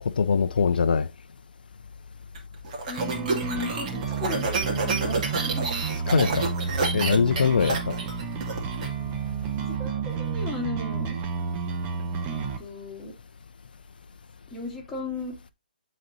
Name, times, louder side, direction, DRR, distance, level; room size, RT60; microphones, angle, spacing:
voice 1, 0.0-1.1 6.1-6.5 6.9-8.0, left 6 dB, 70° left, 0.5 m, -22 dB
sound 1, 2.3-8.9, right 3 dB, 45° right, 2.3 m, -29 dB
voice 2, 2.9-5.7 9.6-11.2 12.2-13.1 14.5-15.3, left 3 dB, 10° left, 2.3 m, -35 dB
sound 2, 3.0-12.6, right 6 dB, 25° right, 1.1 m, -31 dB
12.5 x 4.2 x 2.7 m
hypercardioid pair, 145°, 5 cm